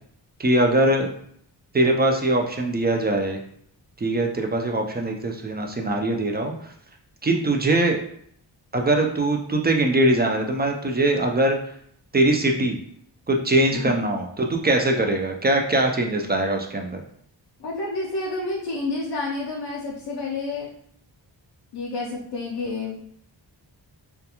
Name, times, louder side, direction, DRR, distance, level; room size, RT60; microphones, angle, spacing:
voice 1, 0.4-1.1 1.7-3.4 4.0-6.5 7.2-8.0 8.7-11.6 12.1-12.8 13.3-17.0, right 1 dB, 25° right, 2 dB, 0.3 m, -22 dB
voice 2, 13.7-14.1 17.6-20.7 21.7-23.0, left 3 dB, 65° left, -3 dB, 0.6 m, -29 dB
2.3 x 2.3 x 2.8 m, 0.66 s
wide cardioid pair, 75°, 44 cm